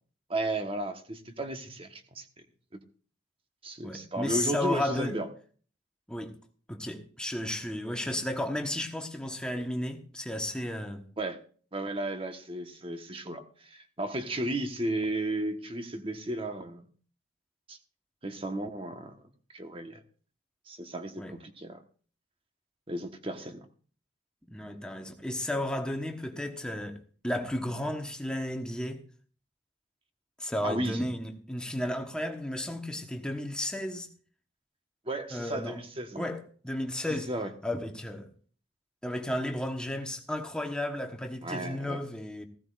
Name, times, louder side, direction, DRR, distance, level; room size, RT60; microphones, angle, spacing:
voice 1, 0.3-2.2 3.6-5.3 11.2-11.4 11.7-16.8 17.7-17.8 18.2-19.2 19.5-20.0 20.7-21.8 22.9-23.6 30.6-31.0 35.1-36.3 37.3-37.5 41.4-42.0, right 1 dB, 30° right, 1.2 m, -34 dB
voice 2, 3.8-5.2 6.1-6.3 6.7-11.1 21.2-21.4 24.5-29.0 30.4-34.1 35.3-35.8 36.2-37.3 37.6-38.3 39.0-42.4, left 1 dB, 5° left, 1.1 m, -33 dB
15.0 x 15.0 x 2.5 m
head